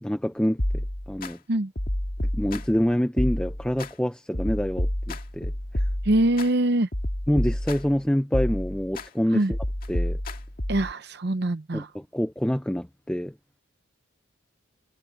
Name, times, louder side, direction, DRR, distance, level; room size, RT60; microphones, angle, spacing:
voice 1, 0.0-1.4 2.3-5.8 7.3-9.6 9.9-10.2 11.7-13.3, equal, 5° left, 0.5 m, -26 dB
sound 1, 0.6-1.3 1.8-2.8 3.2-3.9 4.3-6.5 6.9-8.0 8.3-9.1 9.5-10.9, left 1 dB, 45° left, 2.1 m, -29 dB
voice 2, 6.0-6.9 9.3-9.5 10.7-11.9, right 1 dB, 50° right, 0.7 m, -23 dB
head